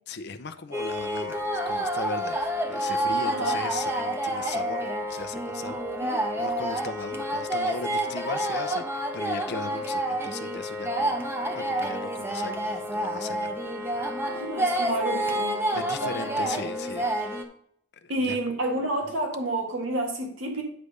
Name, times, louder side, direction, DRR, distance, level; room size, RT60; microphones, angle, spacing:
voice 1, 0.1-5.8 6.4-13.5 13.8-13.9 15.7-17.4 18.0-18.4, left 4 dB, 55° left, 11 dB, 0.7 m, -38 dB
sound 1, 0.7-17.4, right 1 dB, 10° right, 0.8 m, -29 dB
voice 2, 3.2-3.6 6.0-6.2 14.3-16.5 18.1-20.6, right 2 dB, 75° right, 1 dB, 1.7 m, -30 dB
9.7 x 3.4 x 6.5 m, 0.68 s
head